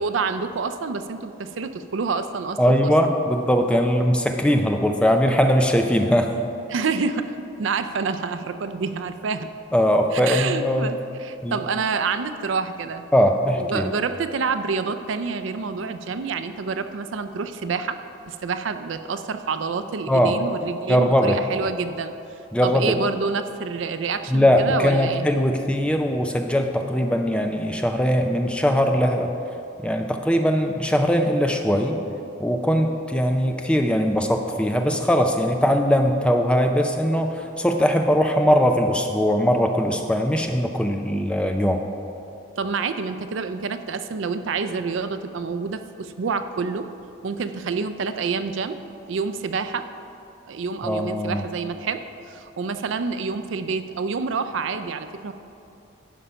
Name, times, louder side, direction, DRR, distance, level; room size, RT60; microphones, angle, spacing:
voice 1, 0.0-2.9 6.7-9.5 10.1-13.1 13.6-18.0 18.3-22.1 22.6-25.3 42.6-46.9 47.2-48.8 49.1-49.9 50.5-55.3, right 5 dB, 80° right, 10 dB, 0.4 m, -28 dB
voice 2, 2.6-6.3 9.7-10.9 11.4-11.6 13.1-13.9 20.1-20.4 20.9-21.4 22.5-22.9 24.3-29.3 29.8-32.0 32.4-41.8 50.8-51.4, equal, 5° left, 4 dB, 0.4 m, -20 dB
11.0 x 5.1 x 5.6 m, 2.7 s
head